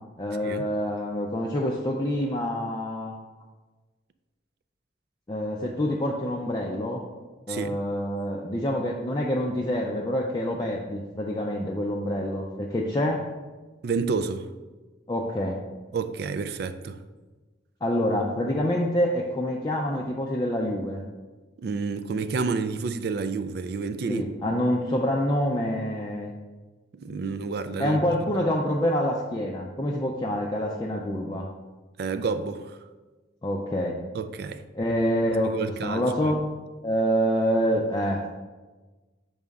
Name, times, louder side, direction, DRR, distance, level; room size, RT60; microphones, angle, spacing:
voice 1, 0.2-3.2 5.3-7.0 7.5-13.2 15.1-15.6 17.8-21.0 24.1-26.3 27.8-31.5 33.4-34.0 34.7-36.5 36.8-38.3, equal, 20° left, 0.4 m, -26 dB
voice 2, 7.5-7.8 13.8-14.5 15.9-17.0 21.6-24.3 27.0-28.0 32.0-32.8 34.1-34.6 35.4-36.0, right 4 dB, 55° right, 0.3 m, -29 dB
5.5 x 3.5 x 5.2 m
head